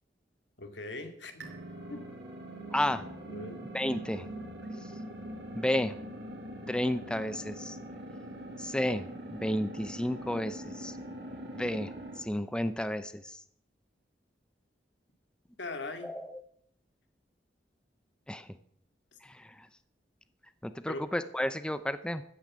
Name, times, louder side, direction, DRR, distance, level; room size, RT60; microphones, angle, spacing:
voice 1, 0.6-1.5 1.9-2.0 3.3-3.6 15.6-16.2 20.9-21.1, left 2 dB, 85° left, 6 dB, 2.3 m, -40 dB
sound 1, 1.4-12.3, right 1 dB, 75° right, 5.2 m, -43 dB
voice 2, 2.7-3.0 3.7-4.3 5.5-6.0 6.7-7.8 8.6-11.0 11.5-13.4 16.0-16.4 18.3-18.5 19.2-19.7 20.6-22.2, left 1 dB, 5° left, 12 dB, 0.6 m, -32 dB
15.5 x 9.9 x 7.5 m, 0.71 s
head